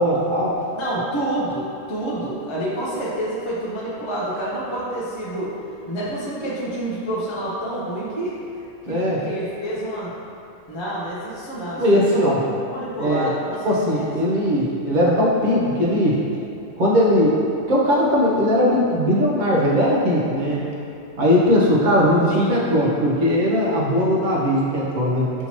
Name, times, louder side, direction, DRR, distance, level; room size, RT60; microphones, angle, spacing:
voice 1, 0.0-0.6 8.9-9.3 11.8-12.4 13.0-13.3 13.6-16.2 16.8-20.7 21.2-25.3, equal, 45° right, -5 dB, 0.8 m, -19 dB
voice 2, 0.7-1.6 1.9-5.5 5.9-8.4 8.9-10.1 10.7-12.4 12.7-14.1 22.3-22.5, right 1 dB, 35° left, -8 dB, 0.5 m, -28 dB
5.7 x 2.8 x 2.9 m, 2.6 s
omnidirectional pair, 1.2 m